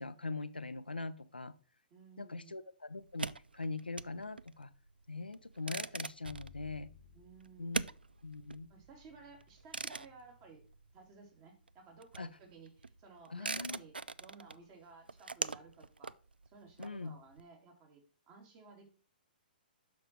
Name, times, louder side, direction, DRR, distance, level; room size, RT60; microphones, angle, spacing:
voice 1, 0.0-1.5 2.2-4.7 5.1-6.9 7.6-7.8 8.2-8.7 12.2-12.3 13.3-13.8 16.8-17.2, left 3 dB, 90° left, 12 dB, 0.7 m, -42 dB
voice 2, 1.9-2.6 7.1-8.0 8.7-10.7 10.9-13.9 14.2-16.2 16.4-18.9, right 4 dB, 30° right, 2 dB, 3.1 m, -57 dB
sound 1, 3.0-11.4 11.6-17.4, right 4 dB, 85° right, 0.4 m, -43 dB
Bowed string instrument, 6.2-12.4, left 8 dB, 45° left, 1.0 m, -62 dB
7.2 x 6.0 x 4.5 m, 0.39 s
figure-of-eight pair, 120°, 5 cm